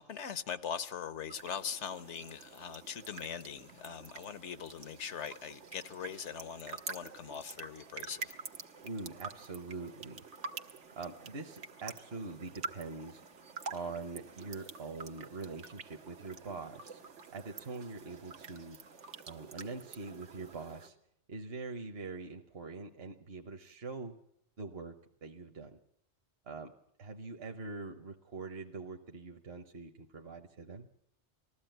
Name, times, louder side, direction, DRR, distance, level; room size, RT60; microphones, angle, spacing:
voice 1, 0.0-8.3, left 7 dB, 85° left, 1.3 m, -41 dB
sound 1, 1.3-20.9, right 4 dB, 90° right, 1.6 m, -48 dB
voice 2, 8.8-10.2 11.0-13.2 13.7-18.8 19.3-21.0 21.3-24.2 24.6-25.8 26.4-26.7 27.0-30.9, right 3 dB, 65° right, 1.2 m, -44 dB
20.0 x 14.5 x 9.1 m
omnidirectional pair, 1.2 m